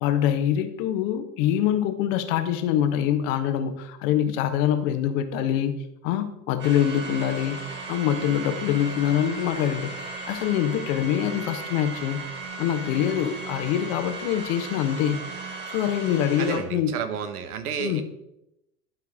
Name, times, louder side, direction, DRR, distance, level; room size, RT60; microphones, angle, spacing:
voice 1, 0.0-5.8 6.0-7.6 7.9-9.9 10.3-12.2 12.6-15.2 15.7-16.9 17.8-18.0, left 10 dB, 60° left, 8 dB, 1.0 m, -24 dB
sound 1, 6.6-16.6, right 3 dB, 25° right, 2.3 m, -36 dB
voice 2, 16.4-18.0, right 7 dB, 80° right, 10 dB, 1.0 m, -31 dB
11.0 x 4.6 x 3.6 m, 0.86 s
hypercardioid pair, 80°, 44 cm